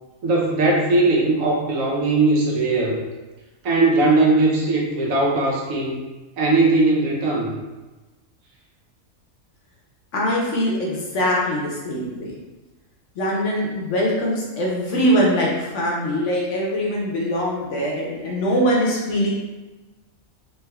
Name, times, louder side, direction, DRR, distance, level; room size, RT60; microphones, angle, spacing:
voice 1, 0.2-3.0 3.6-6.1 6.4-7.5, right 2 dB, 75° right, -3 dB, 1.1 m, -19 dB
voice 2, 10.1-12.3 13.2-19.3, equal, 65° left, -3 dB, 1.0 m, -22 dB
3.4 x 2.8 x 2.2 m, 1.2 s
omnidirectional pair, 1.4 m